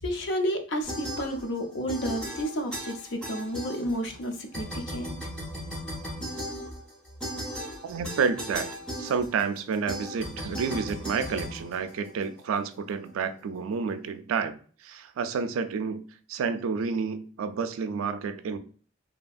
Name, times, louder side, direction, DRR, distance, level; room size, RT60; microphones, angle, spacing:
voice 1, 0.0-5.2, equal, 55° left, 0.5 m, -31 dB
sound 1, 0.9-1.6 1.9-4.2 4.5-12.4, equal, 5° left, 0.6 m, -37 dB
voice 2, 7.8-8.7 9.0-16.0 16.3-18.6, right 5 dB, 80° right, 0.3 m, -30 dB
2.7 x 2.5 x 2.3 m
head